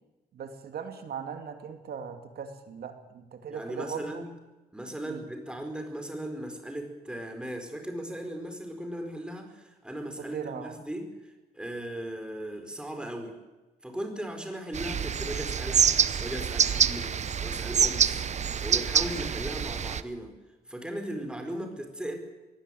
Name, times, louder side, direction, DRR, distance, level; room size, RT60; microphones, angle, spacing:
voice 1, 0.3-4.2 5.0-5.2 10.3-10.7, right 7 dB, 85° right, 7 dB, 2.5 m, -39 dB
voice 2, 3.5-4.3 4.7-13.3 13.8-15.9 16.2-17.1 17.4-18.2 18.6-20.3 20.7-22.2, right 1 dB, 5° right, 5 dB, 4.5 m, -37 dB
sound 1, 14.7-20.0, right 7 dB, 45° right, 0.8 m, -26 dB
22.5 x 17.5 x 9.3 m, 1.1 s
wide cardioid pair, 125°, 16 cm